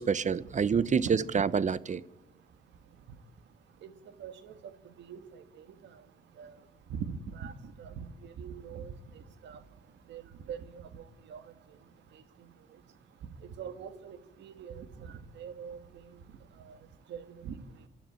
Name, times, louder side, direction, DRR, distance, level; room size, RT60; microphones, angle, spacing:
voice 1, 0.0-2.0, right 6 dB, 40° right, 0.8 m, -27 dB
voice 2, 0.7-1.1 3.1-3.2 3.8-9.6 10.0-12.8 13.2-17.9, right 7 dB, 90° right, 1.7 m, -44 dB
25.0 x 12.0 x 9.1 m
cardioid pair, 70°, 18 cm